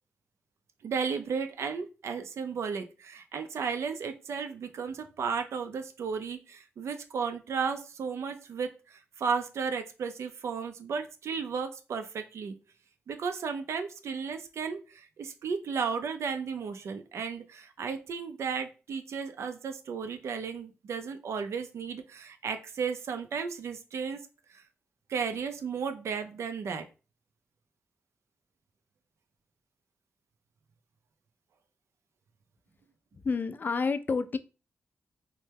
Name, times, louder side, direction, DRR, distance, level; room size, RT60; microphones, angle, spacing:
voice 1, 0.8-12.5 13.1-24.2 24.5-24.6 25.1-26.9, right 6 dB, 80° right, 7 dB, 0.4 m, -34 dB
voice 2, 33.2-34.4, left 4 dB, 40° left, 12 dB, 0.3 m, -29 dB
3.1 x 2.2 x 3.3 m, 0.32 s
cardioid pair, 70°, 5 cm